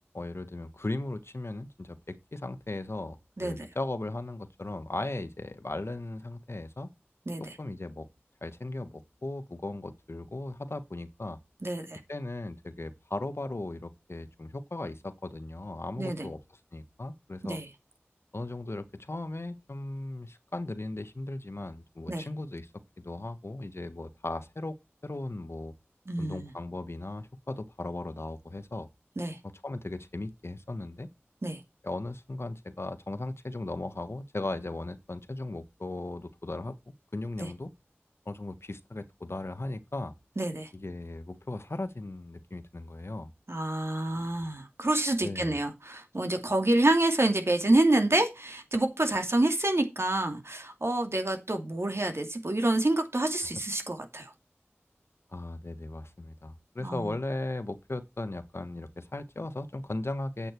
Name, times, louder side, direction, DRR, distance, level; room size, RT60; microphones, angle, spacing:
voice 1, 0.1-6.9 7.4-8.1 8.4-11.4 12.1-16.4 16.7-17.6 18.3-22.7 23.0-24.8 25.0-25.7 26.2-28.9 29.6-31.1 31.8-37.7 38.2-40.1 40.7-43.3 45.2-45.6 55.3-60.5, left 2 dB, 65° left, 1.2 m, -37 dB
voice 2, 11.6-12.0 16.0-16.3 17.4-17.7 22.1-22.3 26.1-26.5 29.2-29.4 31.4-31.6 37.4-37.5 40.4-40.7 43.5-54.3 56.8-57.1, right 1 dB, 65° right, 2.5 m, -27 dB
8.8 x 8.3 x 4.5 m
wide cardioid pair, 45°, 5 cm